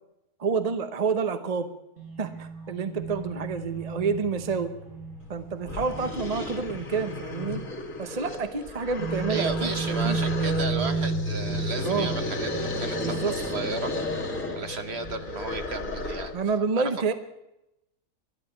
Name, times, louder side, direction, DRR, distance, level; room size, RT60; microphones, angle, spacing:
voice 1, 0.4-1.7 2.2-4.7 5.3-7.6 8.0-11.0 11.8-12.1 13.0-13.4 16.3-17.1, right 5 dB, 30° right, 10 dB, 0.8 m, -29 dB
sound 1, 2.0-7.4 7.7-7.8 9.0-15.6, right 3 dB, 65° right, 3.7 m, -33 dB
sound 2, 5.3-5.4 5.6-16.4, left 2 dB, 60° left, 2.5 m, -34 dB
voice 2, 9.3-13.9 14.5-16.3 16.8-17.1, right 4 dB, 50° right, 9 dB, 1.2 m, -34 dB
12.0 x 11.5 x 9.9 m, 0.89 s
omnidirectional pair, 1.6 m